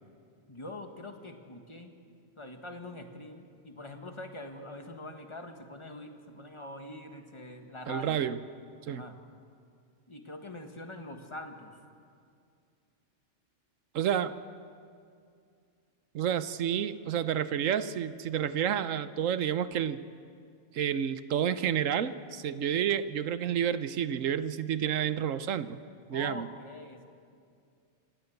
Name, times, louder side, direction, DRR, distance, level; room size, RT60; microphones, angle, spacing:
voice 1, 0.5-1.9 2.4-8.2 8.9-9.2 10.1-11.8 26.1-27.1, left 1 dB, 25° left, 5 dB, 1.7 m, -44 dB
voice 2, 7.9-8.4 8.9-9.0 13.9-14.3 16.1-20.0 20.7-25.8 26.1-26.5, right 9 dB, 85° right, 13 dB, 1.2 m, -30 dB
27.0 x 16.5 x 7.9 m, 2.3 s
omnidirectional pair, 1.3 m